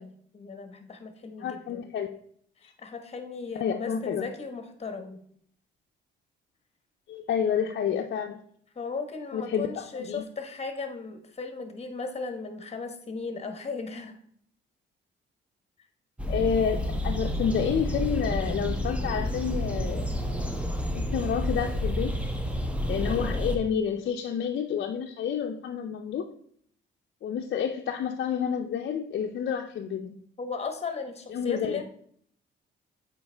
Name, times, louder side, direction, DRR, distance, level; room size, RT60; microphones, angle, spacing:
voice 1, 0.0-1.9 2.6-5.2 8.7-14.2 30.4-31.8, left 4 dB, 30° left, 7 dB, 1.2 m, -36 dB
voice 2, 1.4-2.1 3.6-4.3 7.1-8.4 9.3-10.2 16.3-20.1 20.9-22.1 22.9-26.2 27.2-30.2 31.3-31.8, left 7 dB, 60° left, 2 dB, 0.6 m, -29 dB
sound 1, 16.2-23.6, equal, 5° right, 1.0 m, -30 dB
7.8 x 4.6 x 3.4 m, 0.63 s
cardioid pair, 90°, 20 cm